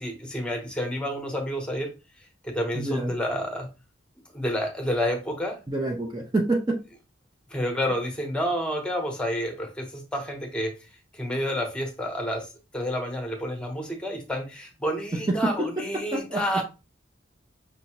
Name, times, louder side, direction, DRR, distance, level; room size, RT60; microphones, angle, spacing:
voice 1, 0.0-1.9 2.5-3.7 4.3-5.6 7.5-10.7 11.2-12.4 12.7-16.6, equal, 5° left, 2 dB, 0.9 m, -29 dB
voice 2, 2.7-3.1 5.7-6.8 15.1-16.6, right 2 dB, 20° right, 1 dB, 0.5 m, -27 dB
5.5 x 2.7 x 2.9 m, 0.29 s
head